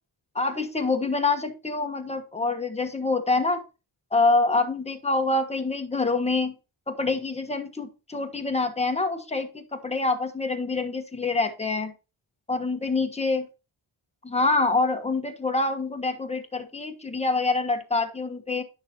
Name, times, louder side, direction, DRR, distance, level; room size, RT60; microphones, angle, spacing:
voice 1, 0.3-3.6 4.1-6.5 6.9-11.9 12.5-13.5 14.2-18.6, left 3 dB, 15° left, 6 dB, 1.3 m, -26 dB
10.5 x 6.1 x 2.9 m, 0.30 s
cardioid pair, 55°, 50 cm